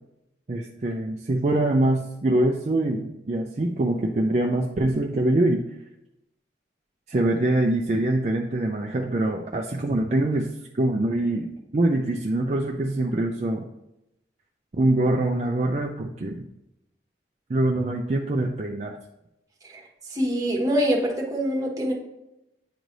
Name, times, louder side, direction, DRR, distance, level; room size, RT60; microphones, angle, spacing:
voice 1, 0.5-5.6 7.1-10.5 10.8-13.7 14.8-16.5 17.5-19.0, right 1 dB, 40° right, 1 dB, 0.4 m, -24 dB
voice 2, 20.1-21.9, equal, 20° right, -2 dB, 1.2 m, -24 dB
9.1 x 3.2 x 3.9 m, 0.87 s
head